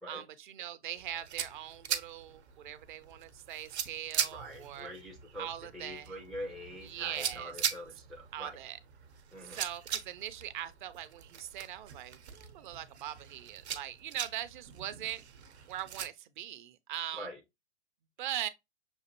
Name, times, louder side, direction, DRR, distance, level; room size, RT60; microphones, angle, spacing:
voice 1, 0.1-4.9 5.4-6.1 6.8-7.5 8.3-8.8 9.4-15.2 15.7-17.3 18.2-18.5, right 12 dB, 45° right, 0.6 m, -41 dB
sound 1, 1.0-16.1, right 8 dB, 65° right, 1.0 m, -41 dB
voice 2, 4.3-8.6 9.3-9.6 17.2-17.4, equal, ahead, 0.3 m, -44 dB
6.4 x 2.5 x 2.8 m
figure-of-eight pair, 115°, 35 cm